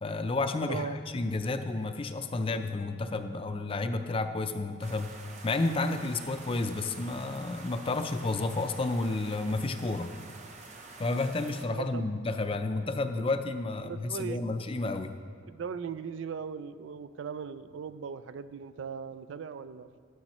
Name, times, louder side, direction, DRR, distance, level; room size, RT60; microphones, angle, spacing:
voice 1, 0.0-5.2 5.4-10.1 11.0-15.2, left 2 dB, 30° left, 8 dB, 0.5 m, -31 dB
voice 2, 0.7-1.0 11.7-12.0 13.8-14.4 15.5-20.0, right 6 dB, 75° right, 13 dB, 0.4 m, -38 dB
sound 1, 4.8-11.7, right 3 dB, 40° right, 0.7 m, -48 dB
12.0 x 11.5 x 3.0 m, 2.1 s
head